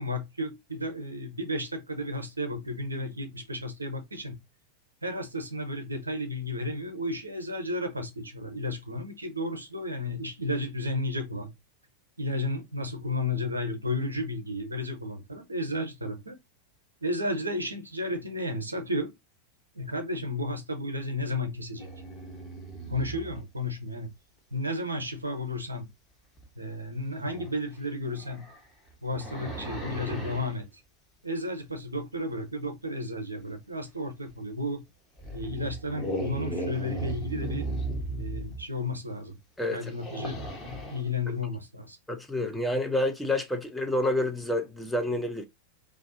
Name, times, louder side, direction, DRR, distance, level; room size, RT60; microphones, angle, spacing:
voice 1, 0.0-4.4 5.0-11.5 12.2-16.3 17.0-19.1 19.7-21.9 22.9-24.1 24.5-25.9 26.6-28.4 29.0-30.7 31.2-34.8 35.3-37.7 38.1-39.4 39.7-40.4 40.9-42.0, left 1 dB, 80° right, 0.7 m, -33 dB
sound 1, 21.8-23.4 26.4-26.5 27.3-27.5 28.1-30.5 34.3-34.4 35.2-38.6 39.8-41.1, right 2 dB, 25° left, 1.0 m, -36 dB
voice 2, 39.6-39.9 42.1-45.4, left 1 dB, 5° left, 0.5 m, -28 dB
2.5 x 2.3 x 2.5 m
figure-of-eight pair, 90°, 0 cm